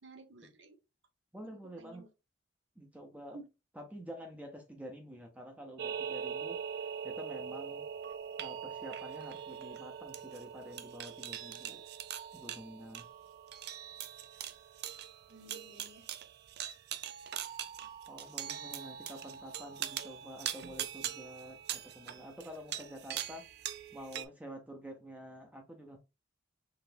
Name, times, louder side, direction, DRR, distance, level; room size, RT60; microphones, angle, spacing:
voice 1, 0.0-0.8 1.4-2.1 3.3-3.5 15.3-16.1, right 2 dB, 75° right, 1.0 m, -53 dB
voice 2, 1.3-2.0 2.8-3.4 3.7-6.6 7.0-7.9 8.4-11.8 12.3-13.1 18.1-23.4 23.9-26.0, equal, 10° right, 0.7 m, -48 dB
sound 1, 5.8-24.2, right 9 dB, 55° right, 0.4 m, -42 dB
4.0 x 3.3 x 2.6 m
head